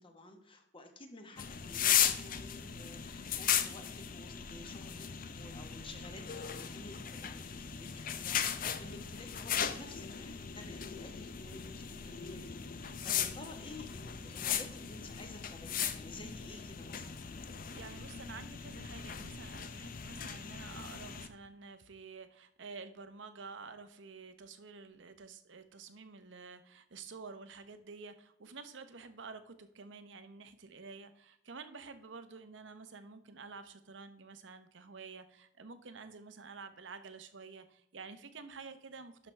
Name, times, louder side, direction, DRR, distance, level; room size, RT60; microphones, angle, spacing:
voice 1, 0.0-17.2, left 2 dB, 30° left, 5 dB, 1.2 m, -52 dB
sound 1, 1.4-21.3, left 8 dB, 50° left, 0.6 m, -37 dB
voice 2, 17.7-39.3, right 4 dB, 80° right, 10 dB, 0.8 m, -50 dB
11.5 x 6.0 x 3.3 m, 0.73 s
head